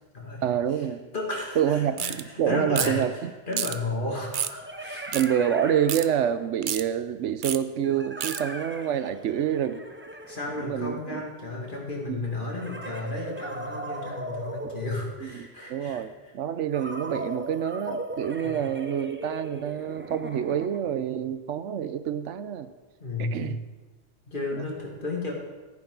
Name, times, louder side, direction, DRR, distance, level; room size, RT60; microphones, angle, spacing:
voice 1, 0.4-1.0 1.6-3.3 5.1-9.8 10.6-11.2 12.1-12.3 15.2-22.7 23.2-23.6, right 9 dB, 90° right, 12 dB, 1.0 m, -27 dB
voice 2, 1.1-5.1 10.3-16.0 18.4-18.7 23.0-23.6 24.3-25.3, left 2 dB, 45° left, -1 dB, 2.5 m, -33 dB
sound 1, 2.0-2.2 2.7-3.0 3.5-3.8 4.3-4.6 5.1-5.3 5.9-6.1 6.6-6.8 7.4-7.6 8.2-8.4, right 9 dB, 55° right, 0.6 m, -29 dB
sound 2, 4.2-6.6 7.8-11.3 12.5-15.6 16.7-21.0, right 1 dB, 15° right, 0.5 m, -39 dB
14.5 x 9.8 x 3.9 m, 1.2 s
omnidirectional pair, 1.2 m